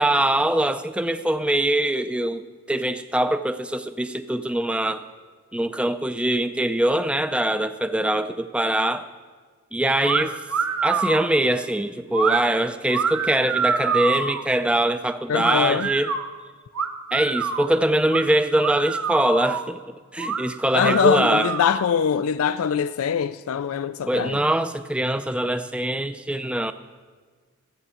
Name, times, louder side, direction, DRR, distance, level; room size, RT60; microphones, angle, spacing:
voice 1, 0.0-2.4 2.7-5.0 5.5-9.1 9.7-10.4 10.8-16.1 17.1-19.8 20.1-21.5 24.1-26.7, right 1 dB, 5° right, 0.4 m, -23 dB
sound 1, 10.0-10.2 10.5-11.3 12.1-12.4 12.9-14.4 15.4-16.2 16.7-17.7 18.1-18.2 18.6-19.6 20.2-20.4 20.8-21.9, right 5 dB, 85° right, 1.1 m, -26 dB
voice 2, 15.3-15.9 20.7-24.4, left 7 dB, 75° left, 0.4 m, -23 dB
13.5 x 8.8 x 6.9 m
head